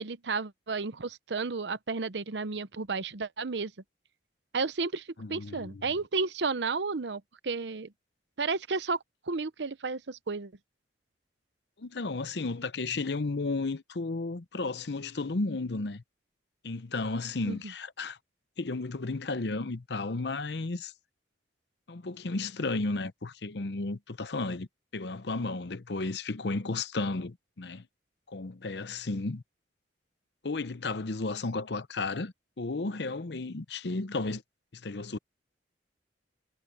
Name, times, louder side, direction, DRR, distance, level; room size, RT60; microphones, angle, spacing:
voice 1, 0.0-3.7 4.5-7.9 8.4-9.0 9.3-10.5 17.5-17.6, right 4 dB, 75° right, 0.8 m, -32 dB
voice 2, 5.2-5.8 11.8-16.0 16.6-18.2 18.6-20.9 21.9-24.7 24.9-27.9 28.3-29.4 30.4-34.4 34.7-35.2, left 3 dB, 70° left, 0.8 m, -33 dB
head